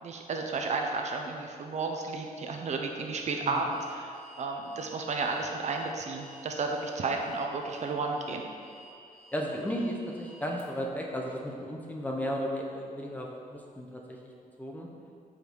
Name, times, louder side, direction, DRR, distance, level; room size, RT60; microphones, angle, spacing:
voice 1, 0.0-4.1 4.4-8.4, right 3 dB, 50° right, 2 dB, 0.6 m, -32 dB
Alarm, 3.7-10.6, right 1 dB, 85° right, 1.0 m, -54 dB
voice 2, 9.3-14.3 14.6-14.9, equal, 10° left, -1 dB, 0.7 m, -35 dB
5.0 x 4.5 x 5.3 m, 2.4 s
wide cardioid pair, 150°, 15 cm